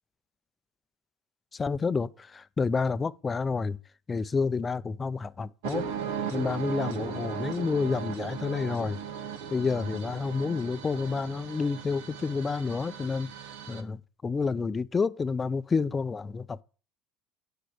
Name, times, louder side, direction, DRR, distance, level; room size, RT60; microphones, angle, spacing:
voice 1, 1.5-3.8 4.1-5.9 6.3-9.0 9.5-13.3 13.7-16.6, left 4 dB, 20° left, 0.4 m, -29 dB
sound 1, 5.6-13.8, right 7 dB, 90° right, 1.0 m, -37 dB
8.5 x 4.6 x 6.7 m
supercardioid pair, 115°, 0 cm